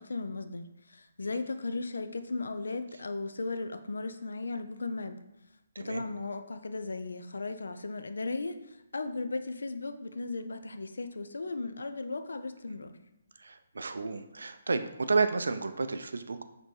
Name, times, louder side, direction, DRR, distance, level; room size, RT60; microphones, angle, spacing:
voice 1, 0.0-5.2 5.8-13.0, left 3 dB, 80° left, 9 dB, 0.4 m, -36 dB
voice 2, 13.4-16.4, right 4 dB, 80° right, 9 dB, 0.4 m, -31 dB
4.3 x 2.7 x 3.1 m, 0.90 s
hypercardioid pair, 150°, 0 cm